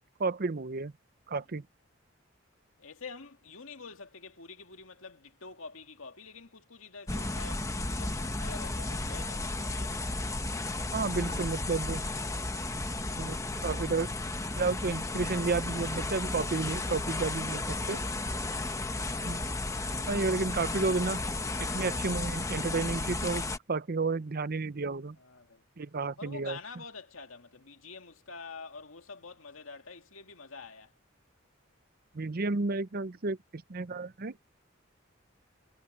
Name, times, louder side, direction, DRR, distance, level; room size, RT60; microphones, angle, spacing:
voice 1, 0.2-0.9 1.3-1.6 10.9-12.1 13.2-14.1 14.5-18.0 19.2-19.4 20.0-21.2 21.6-25.2 25.8-26.6 32.1-34.4, right 3 dB, 50° right, 0.7 m, -32 dB
voice 2, 2.8-10.1 25.2-25.6 26.2-30.9, left 4 dB, 80° left, 2.3 m, -47 dB
sound 1, 7.1-23.6, left 2 dB, 15° left, 1.0 m, -34 dB
head